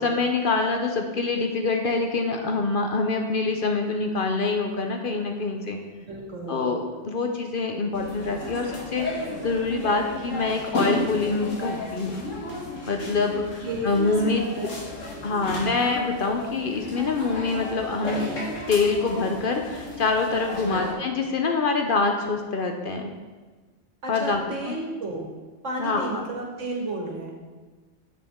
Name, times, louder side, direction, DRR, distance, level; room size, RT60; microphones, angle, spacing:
voice 1, 0.0-5.8 6.5-12.2 12.9-14.4 15.2-18.3 18.7-23.1 24.1-24.4 24.7-24.8 25.8-26.2, left 3 dB, 55° left, 4 dB, 0.7 m, -25 dB
voice 2, 6.0-6.6 13.6-14.7 20.5-20.9 24.0-25.3 25.6-27.3, right 2 dB, 80° right, 0 dB, 1.8 m, -33 dB
sound 1, 7.9-20.9, left 2 dB, 85° left, 2.0 m, -34 dB
8.2 x 7.0 x 3.6 m, 1.3 s
omnidirectional pair, 1.3 m